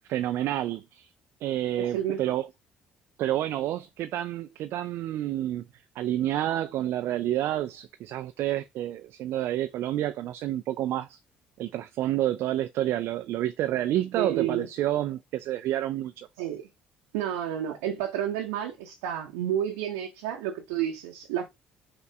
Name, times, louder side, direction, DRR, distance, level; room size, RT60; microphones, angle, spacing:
voice 1, 0.1-1.1 1.4-2.5 3.2-5.7 6.0-11.2 11.6-16.3, right 13 dB, 55° right, 0.3 m, -29 dB
voice 2, 1.8-2.3 14.1-14.7 16.4-16.6 17.1-21.5, right 10 dB, 75° right, 0.7 m, -30 dB
5.7 x 2.3 x 3.3 m
figure-of-eight pair, 50°, 5 cm